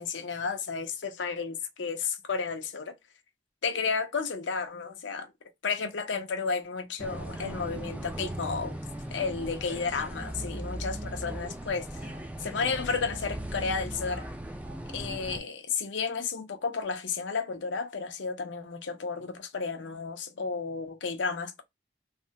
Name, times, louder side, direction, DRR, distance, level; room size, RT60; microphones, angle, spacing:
voice 1, 0.0-2.9 3.6-5.3 5.6-8.8 9.1-12.1 12.4-14.3 14.9-21.6, left 5 dB, 85° left, 0.7 m, -32 dB
sound 1, 7.0-15.4, right 1 dB, 10° right, 0.4 m, -38 dB
3.3 x 2.1 x 2.7 m
head